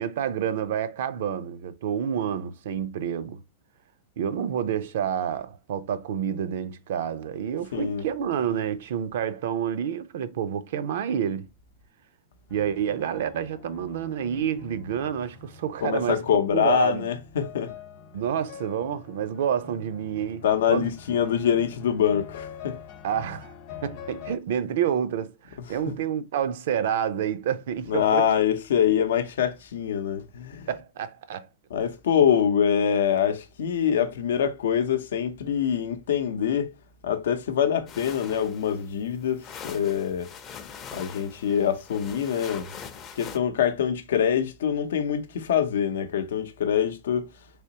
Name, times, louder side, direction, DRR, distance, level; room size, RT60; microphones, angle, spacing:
voice 1, 0.0-3.4 4.2-11.5 12.5-16.2 16.5-17.1 18.1-20.9 23.0-23.5 23.8-28.3 30.7-31.5, right 9 dB, 70° right, 0.4 m, -28 dB
voice 2, 7.7-8.0 15.8-17.7 20.4-22.8 27.9-30.7 31.7-36.7 37.0-40.3 40.9-42.7 43.2-47.2, left 8 dB, 80° left, 0.6 m, -24 dB
sound 1, 12.5-24.4, left 7 dB, 45° left, 0.9 m, -45 dB
sound 2, 37.9-43.4, left 7 dB, 30° left, 0.5 m, -42 dB
3.4 x 2.9 x 2.8 m
supercardioid pair, 145°, 0 cm